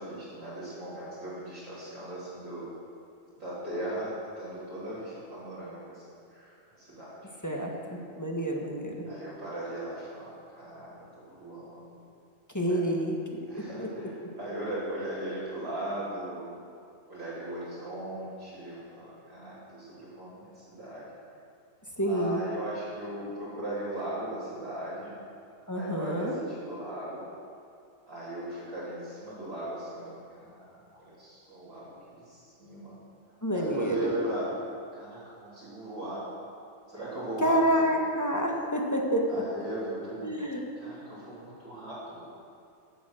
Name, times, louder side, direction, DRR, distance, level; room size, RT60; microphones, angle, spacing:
voice 1, 0.0-2.7 3.4-6.0 6.3-7.3 9.1-12.0 12.7-12.8 13.5-16.5 17.1-21.1 22.0-25.1 25.7-27.2 28.1-33.0 33.5-34.5 34.9-36.3 36.9-37.9 39.3-40.3 40.8-42.2, right 1 dB, 75° right, -11 dB, 3.5 m, -38 dB
voice 2, 7.4-9.0 12.5-13.4 13.8-14.3 22.0-22.4 25.7-26.4 33.4-34.0 37.4-39.6 40.2-40.6, equal, 15° left, -1 dB, 1.3 m, -28 dB
15.0 x 7.2 x 6.3 m, 2.4 s
omnidirectional pair, 1.4 m